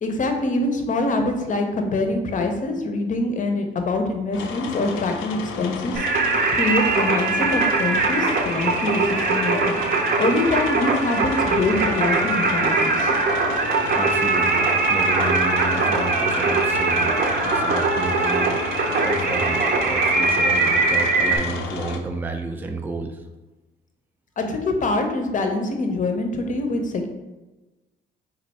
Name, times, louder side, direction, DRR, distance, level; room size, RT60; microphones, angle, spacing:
voice 1, 0.0-13.1 24.4-27.1, left 2 dB, 40° left, 5 dB, 0.6 m, -25 dB
sound 1, 4.3-22.0, left 5 dB, 80° left, 0.5 m, -32 dB
Singing, 5.9-21.4, right 3 dB, 50° right, 0.6 m, -21 dB
voice 2, 13.9-17.2 17.4-18.6 19.0-23.2, right 2 dB, 10° right, 3 dB, 0.3 m, -31 dB
3.2 x 2.5 x 4.1 m, 1.1 s
cardioid pair, 90°, 20 cm